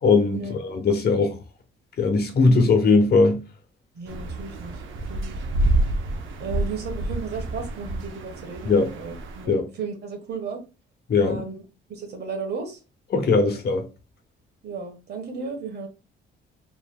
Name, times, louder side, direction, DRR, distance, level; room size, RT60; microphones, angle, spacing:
voice 1, 0.0-1.3 2.0-3.4 8.6-8.9 9.5-9.6 11.1-11.4 13.1-13.8, left 4 dB, 55° left, 1.1 m, -19 dB
voice 2, 3.9-4.8 5.1-5.4 6.4-10.6 11.2-11.6 11.9-12.8 13.4-13.6 14.6-15.9, right 4 dB, 55° right, 1.4 m, -34 dB
sound 1, 4.1-9.5, right 2 dB, 80° right, 0.8 m, -28 dB
4.8 x 3.3 x 2.2 m
cardioid pair, 90°, 20 cm